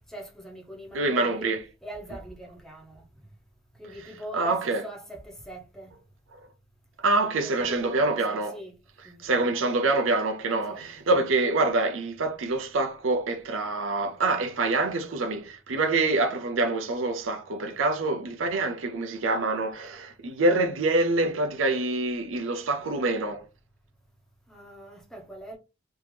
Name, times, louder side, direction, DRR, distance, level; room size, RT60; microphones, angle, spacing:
voice 1, 0.1-3.0 3.8-5.9 7.4-8.8 9.0-9.5 10.7-10.9 24.5-25.6, right 1 dB, ahead, 1.1 m, -42 dB
voice 2, 0.9-1.6 4.3-4.8 7.0-8.5 9.2-23.4, right 2 dB, 85° right, 0.6 m, -26 dB
3.5 x 2.9 x 3.3 m
head